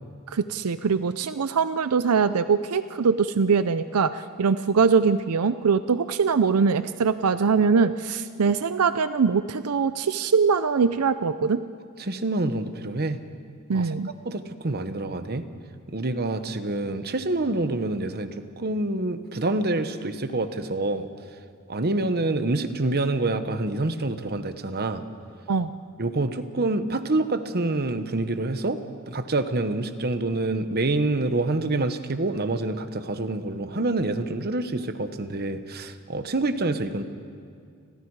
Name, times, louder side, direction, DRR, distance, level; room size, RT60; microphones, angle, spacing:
voice 1, 0.3-11.6 13.7-14.1 25.5-25.7, right 5 dB, 85° right, 12 dB, 0.6 m, -22 dB
voice 2, 12.0-13.2 13.7-13.9 14.2-15.5 15.9-21.1 21.7-25.0 26.0-28.8 29.1-37.0, right 2 dB, 45° right, 10 dB, 1.1 m, -27 dB
30.0 x 21.5 x 4.8 m, 2.3 s
head